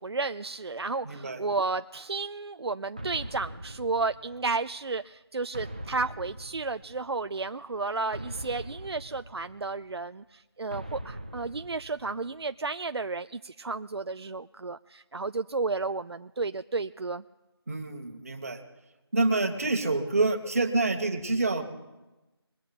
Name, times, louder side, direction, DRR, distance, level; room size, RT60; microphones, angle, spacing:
voice 1, 0.0-17.2, right 3 dB, 70° right, 10 dB, 0.5 m, -32 dB
voice 2, 1.0-1.4 17.7-18.6 19.1-21.6, right 3 dB, 35° right, 6 dB, 1.5 m, -27 dB
sound 1, 3.0-4.7 5.5-7.3 8.1-9.9 10.7-12.5, right 1 dB, 20° right, 0.5 m, -42 dB
22.5 x 8.8 x 4.2 m, 1.0 s
figure-of-eight pair, 175°, 14 cm